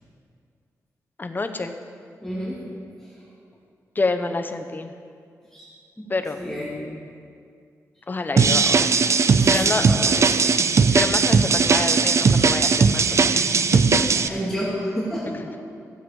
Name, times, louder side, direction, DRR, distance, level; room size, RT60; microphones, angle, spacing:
voice 1, 1.2-1.7 4.0-4.9 6.1-6.4 8.1-8.9 9.5-9.9 10.9-14.3, left 3 dB, 30° left, 6 dB, 0.8 m, -28 dB
voice 2, 2.2-2.6 3.0-3.1 5.5-5.7 6.0-6.1 6.4-6.8 9.3-10.4 14.3-15.6, equal, 5° left, -8 dB, 2.6 m, -30 dB
sound 1, 8.4-14.3, right 5 dB, 50° right, 0.5 m, -18 dB
15.0 x 7.8 x 5.3 m, 2.3 s
wide cardioid pair, 95°, 6 cm